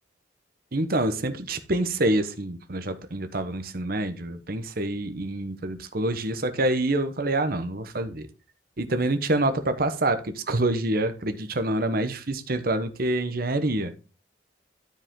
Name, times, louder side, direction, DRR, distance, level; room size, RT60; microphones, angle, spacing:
voice 1, 0.7-8.3 8.8-13.9, right 1 dB, 50° right, 1.0 m, -26 dB
12.5 x 5.0 x 3.7 m
head